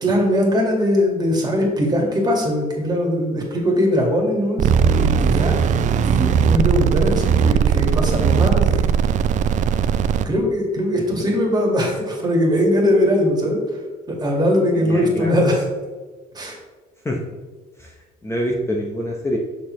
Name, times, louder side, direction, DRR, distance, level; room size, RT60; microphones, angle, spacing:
voice 1, 0.0-5.6 6.1-8.9 10.2-13.8 14.1-15.6 16.3-16.6, equal, 25° right, 0 dB, 1.9 m, -20 dB
sound 1, 4.6-10.2, right 7 dB, 45° right, 0.4 m, -18 dB
voice 2, 14.8-15.4 17.0-17.2 17.8-17.9 18.2-19.4, equal, 15° left, -1 dB, 0.8 m, -25 dB
6.3 x 6.1 x 3.2 m, 1.3 s
cardioid pair, 110°, 17 cm